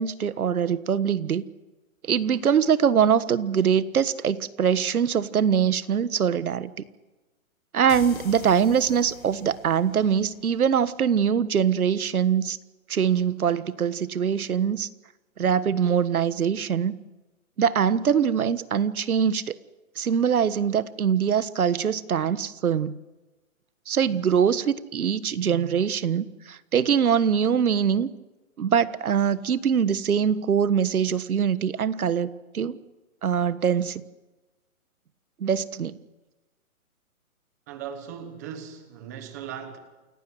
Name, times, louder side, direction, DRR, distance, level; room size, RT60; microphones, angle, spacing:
voice 1, 0.0-1.4 2.0-6.7 7.7-12.6 12.9-14.9 15.4-16.9 17.6-19.5 20.0-23.0 23.9-28.1 28.6-32.8 33.2-34.0 35.4-35.9, right 7 dB, 80° right, 15 dB, 1.5 m, -23 dB
sound 1, 7.9-11.4, left 6 dB, 75° left, 2.3 m, -45 dB
voice 2, 37.7-39.8, right 8 dB, 10° right, 8 dB, 1.2 m, -38 dB
28.5 x 18.0 x 7.9 m, 1.1 s
hypercardioid pair, 180°, 42 cm